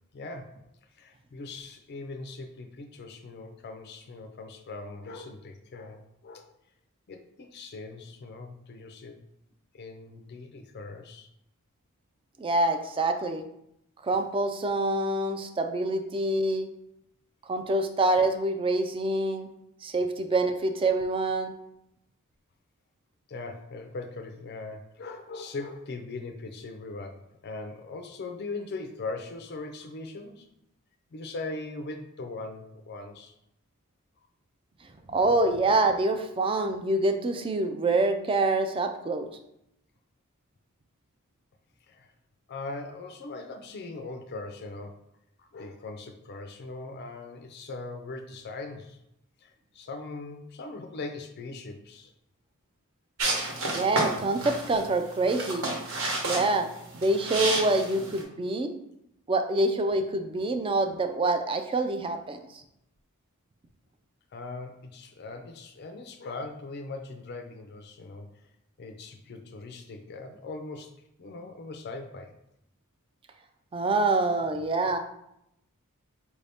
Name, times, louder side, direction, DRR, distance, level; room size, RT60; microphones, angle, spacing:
voice 1, 0.1-0.6 1.0-6.5 7.1-9.2 9.7-11.3 23.3-30.5 31.1-33.3 41.9-42.1 42.5-45.0 45.4-49.0 49.4-52.1 64.3-68.3 68.8-72.3, left 3 dB, 50° left, 5 dB, 0.4 m, -40 dB
voice 2, 12.4-13.4 14.0-16.7 17.5-19.5 19.8-21.5 35.1-39.3 53.7-55.7 56.2-56.7 56.9-58.7 59.3-62.4 73.7-75.0, right 2 dB, 25° right, 6 dB, 0.3 m, -26 dB
sound 1, 53.2-58.2, right 2 dB, 65° right, 1.0 m, -31 dB
4.7 x 2.6 x 3.4 m, 0.80 s
head